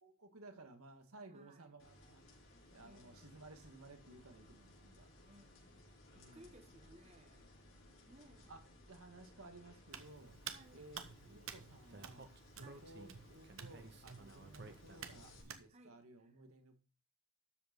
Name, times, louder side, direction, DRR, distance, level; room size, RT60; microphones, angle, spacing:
voice 1, 0.0-2.2 2.7-5.3 6.1-6.5 7.9-8.1 8.5-10.4 10.7-12.3 12.6-16.8, right 2 dB, 90° right, 1.9 m, -58 dB
voice 2, 1.3-1.8 2.8-3.3 5.2-5.9 6.1-7.5 8.0-8.5 10.4-10.9 12.6-12.9 14.5-14.7 15.7-16.4, right 1 dB, 30° right, 1.2 m, -63 dB
sound 1, 1.8-15.4, left 1 dB, 70° left, 4.8 m, -62 dB
Hands, 9.9-15.6, right 7 dB, 70° right, 1.1 m, -52 dB
Speech, 11.9-15.3, right 2 dB, 50° right, 1.2 m, -56 dB
13.0 x 5.2 x 5.2 m
head